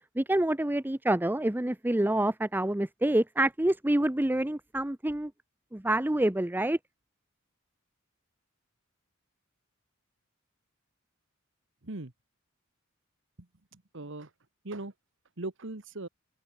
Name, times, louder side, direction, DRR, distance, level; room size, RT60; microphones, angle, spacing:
voice 1, 0.2-5.3 5.7-6.8, right 1 dB, 10° right, 0.6 m, -27 dB
voice 2, 13.4-14.3 14.6-14.9 15.4-16.1, right 2 dB, 65° right, 1.6 m, -40 dB
head